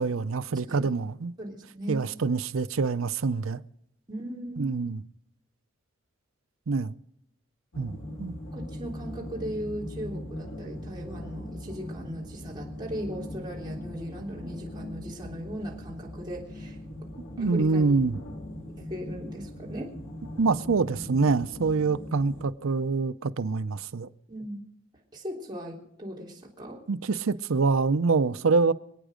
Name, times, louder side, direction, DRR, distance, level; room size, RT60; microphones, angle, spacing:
voice 1, 0.0-1.3 1.9-3.6 4.6-5.0 6.7-6.9 7.8-8.3 17.4-18.2 20.4-24.1 26.9-28.7, right 4 dB, 85° right, 0.6 m, -25 dB
voice 2, 1.4-2.0 4.1-4.7 8.5-16.8 17.4-18.0 18.9-19.9 24.3-24.6 25.1-26.8, equal, 20° right, 3.4 m, -38 dB
sound 1, 7.7-22.4, left 1 dB, 80° left, 2.6 m, -40 dB
26.5 x 9.1 x 5.0 m
head